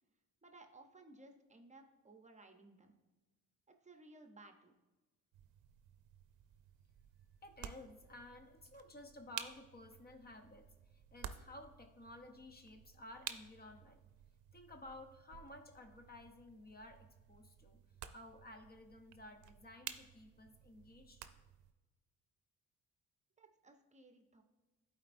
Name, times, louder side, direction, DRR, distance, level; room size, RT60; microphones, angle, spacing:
voice 1, 0.4-3.0 3.8-4.7 23.4-24.4, right 2 dB, 25° right, 5 dB, 0.7 m, -59 dB
sound 1, 5.3-21.7, right 10 dB, 75° right, 0.5 m, -53 dB
voice 2, 7.4-14.0 14.5-17.8 18.1-21.3, left 1 dB, 30° left, 6 dB, 0.8 m, -55 dB
11.0 x 4.3 x 2.6 m, 1.2 s
cardioid pair, 90°, 30 cm